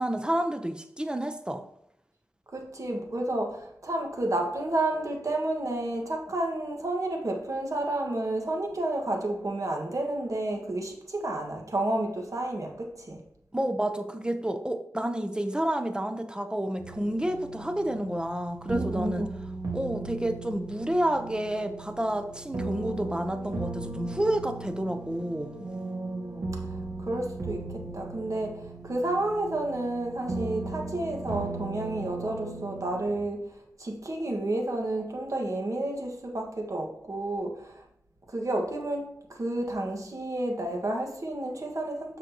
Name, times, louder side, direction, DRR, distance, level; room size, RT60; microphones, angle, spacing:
voice 1, 0.0-1.6 13.5-19.3 19.7-25.6, right 1 dB, 15° right, 7 dB, 0.8 m, -30 dB
voice 2, 2.5-13.2 18.7-19.3 25.6-26.5 27.0-33.4 33.8-37.8 38.3-42.2, right 1 dB, 55° right, 1 dB, 1.8 m, -31 dB
sound 1, 16.8-33.2, right 3 dB, 75° right, 1.7 m, -38 dB
8.0 x 6.2 x 3.0 m, 0.74 s
wide cardioid pair, 55°, 7 cm